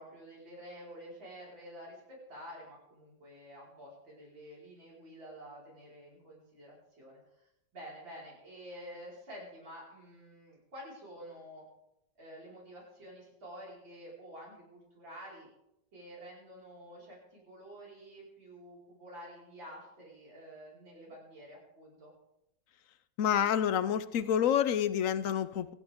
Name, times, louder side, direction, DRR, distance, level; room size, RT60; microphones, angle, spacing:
voice 1, 0.0-11.6 12.2-15.5 15.9-22.1, equal, 75° right, -5 dB, 5.6 m, -49 dB
voice 2, 23.2-25.7, left 9 dB, 65° left, 13 dB, 0.8 m, -28 dB
25.0 x 11.5 x 3.6 m, 0.86 s
omnidirectional pair, 2.1 m